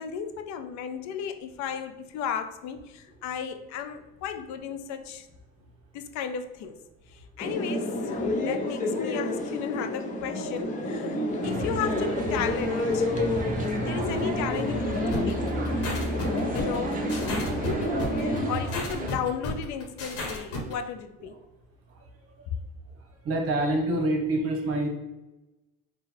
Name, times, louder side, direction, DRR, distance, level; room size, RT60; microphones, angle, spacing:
voice 1, 0.0-5.3 5.9-6.8 7.1-13.1 13.6-15.4 16.5-17.1 18.2-21.3, left 7 dB, 70° left, 8 dB, 0.6 m, -34 dB
sound 1, 7.4-18.5, left 1 dB, 25° left, 0.7 m, -29 dB
sound 2, 11.4-19.1, right 2 dB, 30° right, 0.7 m, -33 dB
sound 3, 15.1-20.7, left 2 dB, 55° left, 1.2 m, -34 dB
voice 2, 22.9-24.9, right 1 dB, 50° right, 3 dB, 1.1 m, -29 dB
3.8 x 2.3 x 4.3 m, 1.0 s
cardioid pair, 120°, 29 cm